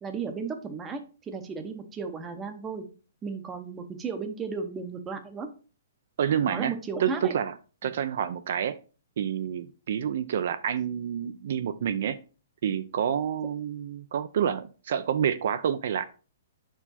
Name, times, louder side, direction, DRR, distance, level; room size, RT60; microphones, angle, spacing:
voice 1, 0.0-2.8 3.2-5.5 6.5-7.3 7.8-7.9, right 5 dB, 10° right, 6 dB, 0.7 m, -35 dB
voice 2, 6.2-6.7 7.0-7.5 7.8-8.8 9.2-12.2 12.6-16.0, right 8 dB, 55° right, 11 dB, 0.4 m, -28 dB
5.7 x 4.5 x 4.2 m, 0.35 s
hypercardioid pair, 170°, 0 cm